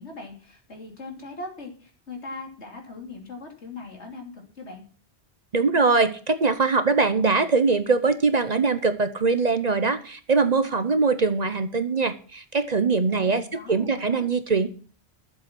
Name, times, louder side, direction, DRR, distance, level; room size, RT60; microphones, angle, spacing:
voice 1, 0.0-4.8 13.1-14.3, left 3 dB, 85° left, 1 dB, 3.2 m, -40 dB
voice 2, 5.5-13.4 13.7-14.7, right 4 dB, 40° right, 11 dB, 0.8 m, -22 dB
11.0 x 7.6 x 6.0 m, 0.41 s
omnidirectional pair, 1.1 m